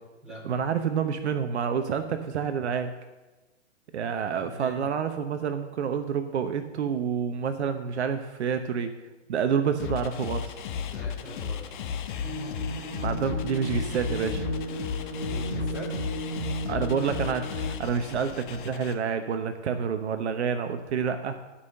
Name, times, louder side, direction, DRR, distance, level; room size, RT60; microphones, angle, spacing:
voice 1, 0.4-2.9 3.9-8.9 9.3-10.6 13.0-14.4 16.7-21.4, right 7 dB, 65° right, 8 dB, 1.0 m, -28 dB
voice 2, 4.4-4.8 10.8-11.6 15.2-15.9 16.7-17.1, right 1 dB, ahead, -7 dB, 4.5 m, -42 dB
sound 1, 9.8-18.9, left 7 dB, 40° left, 1.2 m, -34 dB
sound 2, 12.2-17.7, right 1 dB, 30° right, 2.1 m, -35 dB
13.0 x 5.7 x 6.5 m, 1.1 s
hypercardioid pair, 140°, 37 cm